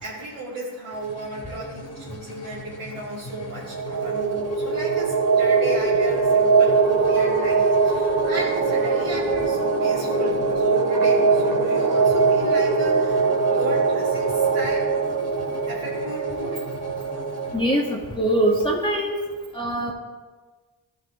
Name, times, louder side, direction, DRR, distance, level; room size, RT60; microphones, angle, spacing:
voice 1, 0.0-14.9 15.7-16.9, right 2 dB, 90° right, -10 dB, 2.4 m, -34 dB
sound 1, 0.9-17.6, left 2 dB, 30° left, 1.2 m, -41 dB
sound 2, 3.6-18.0, right 4 dB, 65° right, 1.5 m, -21 dB
sound 3, 8.3-14.9, right 3 dB, 45° right, 1.2 m, -38 dB
voice 2, 17.5-19.2 19.5-19.9, right 1 dB, 10° left, -3 dB, 1.5 m, -22 dB
13.0 x 5.8 x 3.6 m, 1.3 s
cardioid pair, 45°, 47 cm